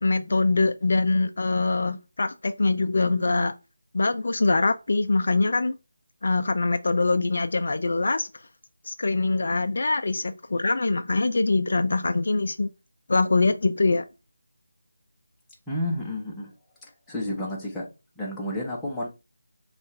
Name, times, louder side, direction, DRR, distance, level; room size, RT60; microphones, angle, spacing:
voice 1, 0.0-3.5 3.9-5.8 6.2-8.3 8.9-12.7 13.1-14.0, left 3 dB, 55° left, 0.4 m, -23 dB
voice 2, 15.7-16.5 17.1-17.9 18.2-19.1, left 1 dB, 5° left, 0.9 m, -30 dB
5.4 x 2.4 x 3.2 m
figure-of-eight pair, 160°, 0 cm